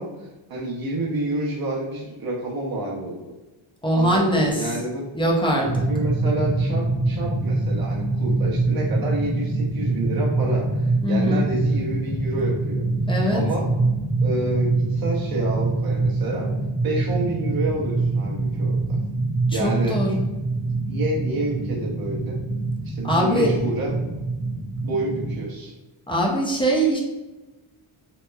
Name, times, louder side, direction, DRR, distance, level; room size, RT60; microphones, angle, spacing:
voice 1, 0.0-3.3 3.9-5.1 5.6-12.9 13.3-13.7 14.2-16.5 16.8-18.8 19.5-20.0 20.8-22.4 22.8-24.0 24.8-25.7, right 1 dB, 45° right, -4 dB, 0.8 m, -29 dB
voice 2, 3.8-4.7 5.1-5.7 11.0-11.4 13.1-13.4 19.5-20.2 23.1-23.5 26.1-27.0, equal, 10° left, -3 dB, 0.4 m, -21 dB
sound 1, 5.6-25.4, right 2 dB, 85° left, 1.2 m, -25 dB
2.9 x 2.0 x 2.2 m, 1.1 s
cardioid pair, 100°, 49 cm